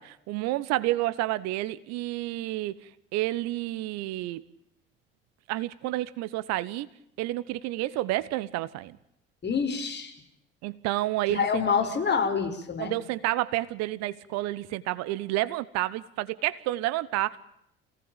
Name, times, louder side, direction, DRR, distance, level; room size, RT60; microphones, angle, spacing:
voice 1, 0.0-4.4 5.5-6.9 7.2-9.0 10.6-11.6 12.8-17.4, right 16 dB, 60° right, 1.1 m, -30 dB
voice 2, 9.4-10.1 11.3-13.0, left 6 dB, 35° left, 5.6 m, -27 dB
27.5 x 18.5 x 8.9 m
figure-of-eight pair, 50°, 29 cm